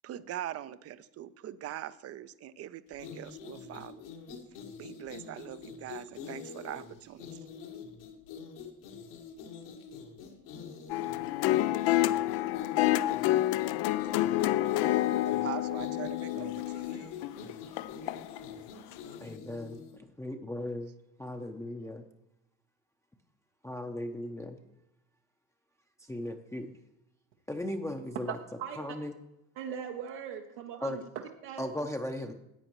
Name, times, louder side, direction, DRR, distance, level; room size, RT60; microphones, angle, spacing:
voice 1, 0.0-4.0 4.8-7.3 14.0-14.2 15.3-17.5, right 12 dB, 30° right, 15 dB, 0.5 m, -42 dB
sound 1, 2.9-20.0, left 6 dB, 70° left, 1.9 m, -45 dB
sound 2, 10.9-18.4 18.9-19.0, left 14 dB, 50° left, 0.5 m, -28 dB
voice 2, 19.2-20.9 21.2-22.0 23.6-24.6 26.0-26.7 27.5-28.4 28.8-29.1 30.8-31.0 31.6-32.3, left 1 dB, 5° left, 3 dB, 0.7 m, -37 dB
voice 3, 28.3-28.8 29.6-31.0 31.4-31.6, right 8 dB, 75° right, 1 dB, 1.1 m, -39 dB
14.0 x 8.7 x 3.0 m, 0.88 s
hypercardioid pair, 75°, 47 cm